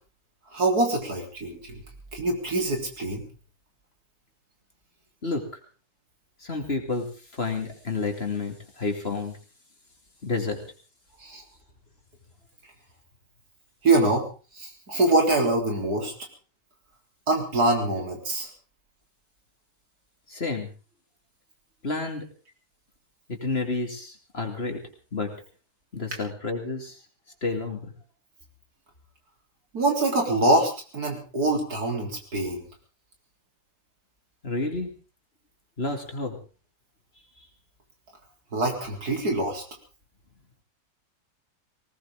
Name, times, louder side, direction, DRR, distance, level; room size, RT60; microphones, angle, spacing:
voice 1, 0.5-1.8 2.1-3.2 11.2-11.4 13.8-14.3 14.6-16.1 17.3-18.5 29.7-32.6 38.5-39.6, right 2 dB, 75° right, 2 dB, 4.1 m, -24 dB
voice 2, 5.2-5.6 6.4-7.1 7.3-9.4 10.2-10.6 20.3-20.7 21.8-22.2 23.3-24.8 25.1-25.3 25.9-27.0 27.4-27.9 34.4-34.9 35.8-36.4, left 3 dB, 40° left, 4 dB, 2.9 m, -30 dB
19.5 x 18.5 x 3.7 m, 0.36 s
omnidirectional pair, 1.7 m